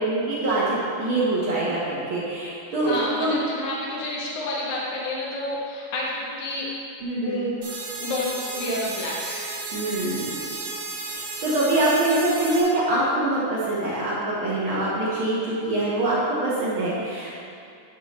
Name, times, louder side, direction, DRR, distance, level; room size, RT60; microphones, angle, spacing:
voice 1, 0.0-3.4 7.0-7.4 9.7-10.4 10.6-10.7 11.1-17.4, right 2 dB, 55° right, -7 dB, 1.5 m, -24 dB
voice 2, 2.8-6.7 7.2-7.6 8.0-9.4 15.2-15.3, left 1 dB, 70° left, -4 dB, 1.3 m, -29 dB
sound 1, 7.6-12.6, right 3 dB, 90° right, 3.1 m, -34 dB
11.0 x 5.8 x 3.1 m, 2.4 s
omnidirectional pair, 3.9 m